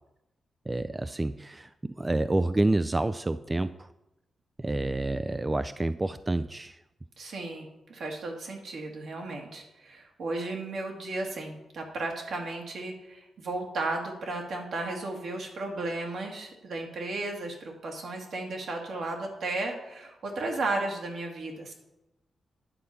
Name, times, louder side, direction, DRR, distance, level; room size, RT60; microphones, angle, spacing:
voice 1, 0.7-3.9 4.6-6.8, right 2 dB, 25° right, 12 dB, 0.3 m, -28 dB
voice 2, 7.2-21.7, right 2 dB, 75° right, 1 dB, 1.9 m, -34 dB
9.6 x 4.2 x 6.6 m, 0.90 s
cardioid pair, 65°, 0 cm